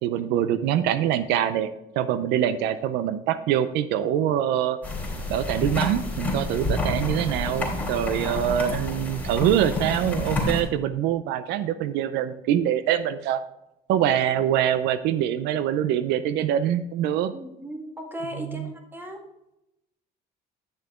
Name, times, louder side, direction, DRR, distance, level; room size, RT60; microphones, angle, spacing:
voice 1, 0.0-1.7 2.0-4.8 5.3-13.4 13.9-17.3 18.3-18.7, right 10 dB, 90° right, 13 dB, 0.6 m, -24 dB
sound 1, 4.8-10.6, left 2 dB, 10° left, 3.3 m, -29 dB
voice 2, 17.3-19.2, equal, 10° right, 2 dB, 2.0 m, -36 dB
10.0 x 6.7 x 3.6 m, 0.88 s
cardioid pair, 110°, 17 cm